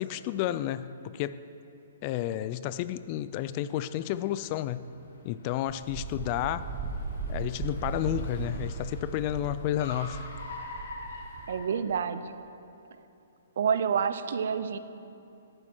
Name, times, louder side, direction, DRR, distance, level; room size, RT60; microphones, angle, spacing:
voice 1, 0.0-1.5 2.0-4.8 5.2-6.7 7.3-10.3, left 12 dB, 35° left, 15 dB, 0.3 m, -31 dB
Car, 2.6-12.4, left 2 dB, 70° left, 1.7 m, -46 dB
Wind, 5.7-11.6, right 5 dB, 25° right, 0.9 m, -37 dB
voice 2, 11.5-12.2 13.6-14.8, right 7 dB, 65° right, 11 dB, 0.5 m, -28 dB
11.0 x 9.2 x 4.4 m, 2.8 s
hypercardioid pair, 140°, 0 cm